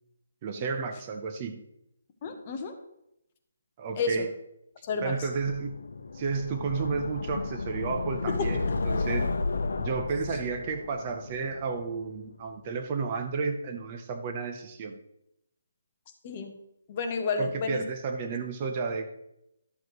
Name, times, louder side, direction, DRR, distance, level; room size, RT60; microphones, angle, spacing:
voice 1, 0.4-1.6 3.8-4.3 5.0-5.8 6.1-9.3 9.8-15.0 17.4-19.3, right 5 dB, 25° right, 6 dB, 0.7 m, -32 dB
voice 2, 2.2-2.7 4.0-4.3 4.8-5.3 8.3-8.5 16.2-16.6 16.9-17.8, left 4 dB, 25° left, 5 dB, 1.0 m, -31 dB
sound 1, 5.2-12.3, left 3 dB, 80° left, 0.7 m, -33 dB
12.5 x 7.6 x 3.1 m, 0.83 s
hypercardioid pair, 170°, 0 cm